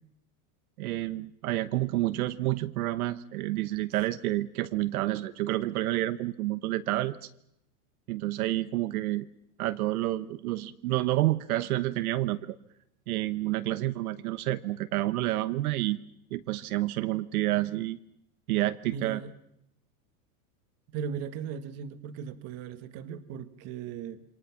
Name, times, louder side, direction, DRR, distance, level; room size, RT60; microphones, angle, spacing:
voice 1, 0.8-7.3 8.1-9.3 9.6-12.6 13.1-16.0 16.3-18.0 18.5-19.2, right 16 dB, 70° right, 12 dB, 1.1 m, -29 dB
voice 2, 18.8-19.3 20.9-24.2, right 7 dB, 35° right, 11 dB, 1.5 m, -38 dB
28.0 x 24.5 x 5.9 m, 0.78 s
supercardioid pair, 165°, 45 cm